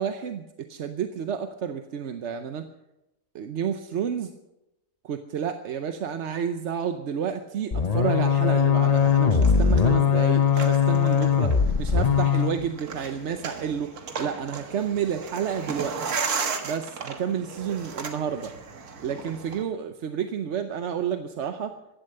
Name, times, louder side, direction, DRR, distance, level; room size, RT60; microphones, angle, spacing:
voice 1, 0.0-2.7 3.3-4.3 5.0-13.9 14.2-16.0 16.6-18.5 19.0-21.8, right 8 dB, 55° right, 8 dB, 1.0 m, -30 dB
sound 1, 7.7-12.6, left 7 dB, 35° left, 0.7 m, -20 dB
sound 2, 8.8-19.6, right 5 dB, 75° right, 1.9 m, -36 dB
15.5 x 12.0 x 6.6 m, 0.92 s
omnidirectional pair, 1.6 m